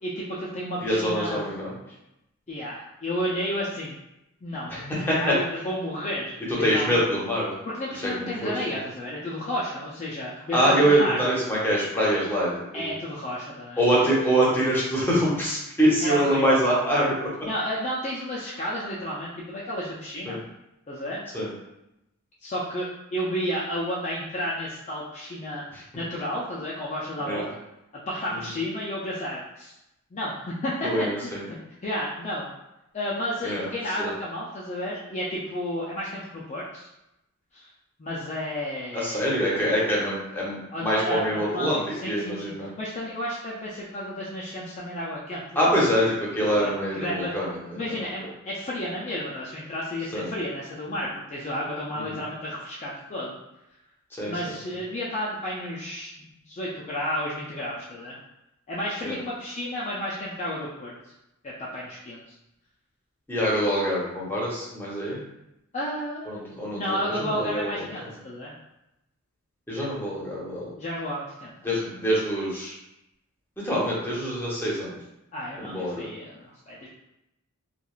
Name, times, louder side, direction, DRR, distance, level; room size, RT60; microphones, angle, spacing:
voice 1, 0.0-1.4 2.5-4.0 4.4-7.0 7.7-11.3 12.7-14.1 16.0-16.6 17.4-20.4 20.9-21.2 22.4-25.6 25.9-27.6 27.9-29.7 30.1-31.6 31.8-32.5 32.9-36.9 37.5-37.7 38.0-39.4 40.7-45.7 46.4-47.3 47.7-53.4 54.3-56.1 56.5-58.2 58.7-61.1 61.4-62.3 65.7-66.4 66.7-68.5 70.8-71.8 75.3-76.9, equal, 30° left, -6 dB, 0.4 m, -32 dB
voice 2, 0.8-1.7 4.7-5.2 6.6-7.5 8.0-8.8 10.5-12.9 13.8-17.3 20.3-20.4 21.3-21.5 27.3-27.5 30.8-31.4 33.4-33.7 34.0-34.1 38.9-42.7 45.6-47.6 47.8-48.0 50.1-50.3 51.9-52.2 54.2-54.5 59.0-59.2 63.3-65.2 66.3-67.8 69.7-70.7 71.6-72.8 73.6-74.9 75.6-76.1, equal, 10° left, -6 dB, 0.7 m, -25 dB
3.0 x 2.4 x 2.3 m, 0.88 s
head